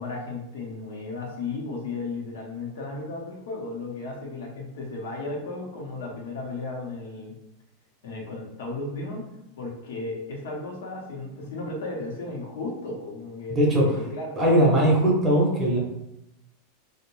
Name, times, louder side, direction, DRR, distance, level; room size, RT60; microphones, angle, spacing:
voice 1, 0.0-7.3 8.0-9.2 9.6-13.6 13.9-14.4, left 3 dB, 85° left, 0 dB, 0.7 m, -34 dB
voice 2, 13.5-13.9 14.4-15.8, right 1 dB, 15° right, -3 dB, 0.6 m, -20 dB
2.5 x 2.0 x 3.0 m, 0.86 s
supercardioid pair, 170°, 0 cm